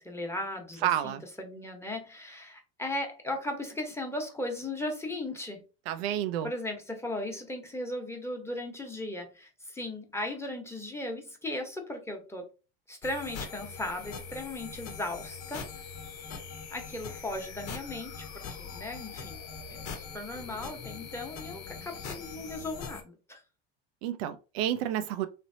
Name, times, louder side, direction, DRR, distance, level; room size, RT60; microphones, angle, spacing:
voice 1, 0.0-5.6 6.4-12.5 12.9-15.6 16.7-18.2 18.6-19.4 19.7-23.4, left 1 dB, 10° left, 1.0 m, -37 dB
voice 2, 0.8-1.2 5.9-6.5 24.0-25.3, right 11 dB, 80° right, 0.5 m, -30 dB
sound 1, 13.0-23.0, left 5 dB, 60° left, 1.0 m, -42 dB
3.3 x 2.8 x 2.7 m
supercardioid pair, 85°, 30 cm